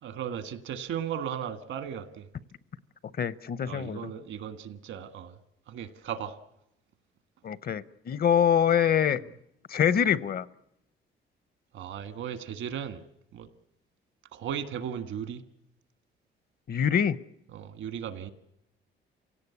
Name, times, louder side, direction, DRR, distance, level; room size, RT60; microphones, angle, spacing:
voice 1, 0.0-2.3 3.6-5.4 5.7-6.4 11.7-13.0 13.3-13.5 14.3-15.4 17.5-18.3, right 9 dB, 80° right, 10 dB, 1.6 m, -36 dB
voice 2, 3.2-4.1 7.4-9.2 9.7-10.5 16.7-17.2, left 8 dB, 50° left, 18 dB, 0.8 m, -25 dB
27.5 x 17.0 x 8.4 m, 0.82 s
cardioid pair, 90°, 20 cm